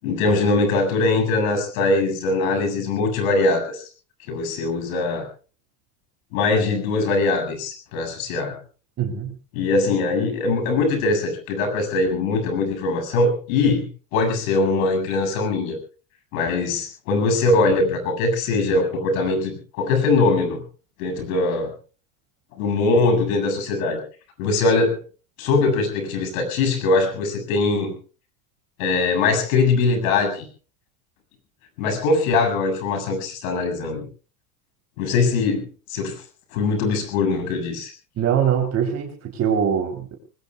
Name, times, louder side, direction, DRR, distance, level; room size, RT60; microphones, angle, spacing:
voice 1, 0.0-3.9 4.3-5.2 6.3-8.6 9.5-13.9 14.1-15.8 16.3-20.6 21.0-21.7 22.6-24.0 24.4-25.0 25.4-27.9 28.8-30.5 31.8-34.0 35.0-36.2 36.5-37.9, left 3 dB, 75° left, 7 dB, 7.6 m, -21 dB
voice 2, 9.0-9.4 38.2-40.1, right 8 dB, 35° right, 3 dB, 3.6 m, -22 dB
28.0 x 21.0 x 2.4 m, 0.38 s
supercardioid pair, 145°, 42 cm